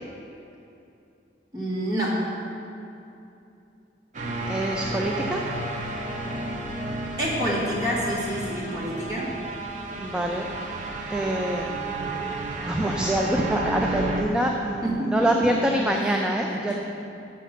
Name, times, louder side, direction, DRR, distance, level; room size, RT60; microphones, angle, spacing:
voice 1, 1.5-2.1 7.2-9.3 14.8-15.3 16.5-16.8, equal, 20° right, -7 dB, 1.9 m, -27 dB
sound 1, 4.1-14.2, right 2 dB, 40° right, 0.7 m, -32 dB
voice 2, 4.5-5.4 10.0-10.5 11.1-11.7 12.0-12.2 12.6-16.7, right 1 dB, 5° right, 0 dB, 0.4 m, -25 dB
7.0 x 6.3 x 5.8 m, 2.7 s
head